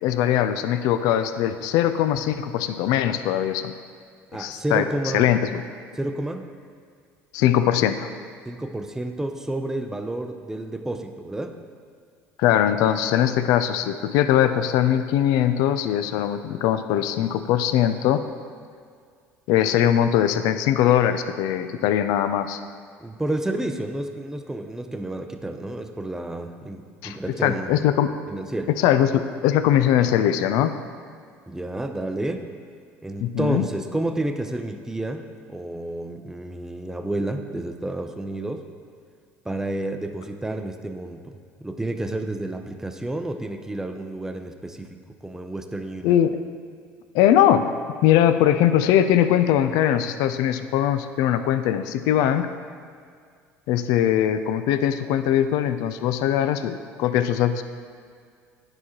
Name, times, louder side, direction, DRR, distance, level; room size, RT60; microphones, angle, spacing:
voice 1, 0.0-3.7 4.4-4.9 5.1-5.5 7.3-8.1 12.4-18.2 19.5-22.6 27.0-27.2 27.4-28.1 28.8-30.8 33.2-33.6 46.0-46.4 47.1-47.8 48.0-52.5 53.7-57.6, left 10 dB, 75° left, 10 dB, 0.4 m, -21 dB
voice 2, 4.3-5.3 5.9-6.5 8.5-11.6 23.0-27.8 28.3-28.7 31.5-32.5 33.0-38.7 39.4-46.2, right 1 dB, 10° right, 6 dB, 0.5 m, -30 dB
10.5 x 4.8 x 2.9 m, 2.1 s
supercardioid pair, 85°, 6 cm